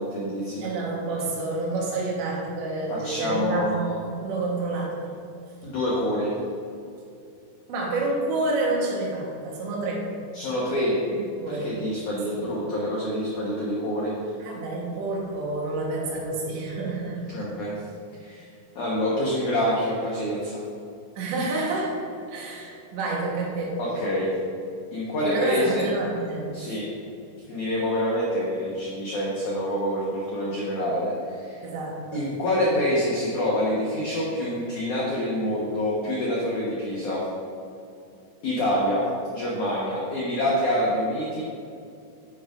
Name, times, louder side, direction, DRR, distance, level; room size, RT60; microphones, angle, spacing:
voice 1, 0.0-0.7 2.9-3.8 5.6-6.3 10.3-11.0 11.5-14.1 17.3-17.7 18.2-18.4 18.7-20.6 23.8-24.3 24.9-25.9 26.5-26.9 27.5-31.6 32.1-37.2 38.4-39.0 39.3-41.4, left 1 dB, 90° left, -6 dB, 1.7 m, -26 dB
voice 2, 0.6-5.1 7.7-10.1 11.1-11.7 12.4-12.5 14.4-17.4 21.2-22.0 22.3-23.8 25.2-26.7 31.6-32.2, right 2 dB, 70° right, -2 dB, 3.4 m, -29 dB
10.5 x 9.4 x 2.6 m, 2.5 s
omnidirectional pair, 5.6 m